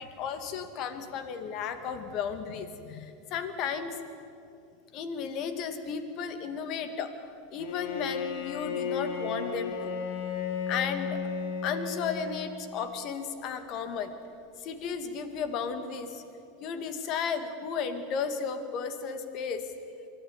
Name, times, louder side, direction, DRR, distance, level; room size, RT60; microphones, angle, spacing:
voice 1, 0.0-4.0 4.9-10.0 10.7-11.2 11.6-14.1 14.6-16.2 16.6-19.6, left 6 dB, 50° left, 8 dB, 2.3 m, -34 dB
Bowed string instrument, 7.6-13.0, left 6 dB, 70° left, 2.8 m, -34 dB
23.5 x 14.5 x 9.7 m, 2.5 s
hypercardioid pair, 105°, 0 cm